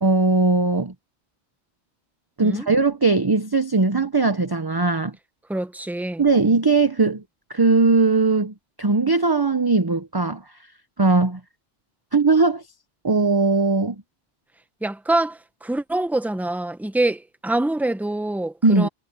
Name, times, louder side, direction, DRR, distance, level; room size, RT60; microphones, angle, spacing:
voice 1, 0.0-0.9 2.4-5.1 6.2-7.2 7.5-10.4 11.0-11.4 12.1-12.6 13.0-14.0 18.6-18.9, right 3 dB, 25° right, 0.7 m, -19 dB
voice 2, 5.5-6.2 14.8-18.9, right 2 dB, ahead, 1.0 m, -25 dB
omnidirectional pair, 1.2 m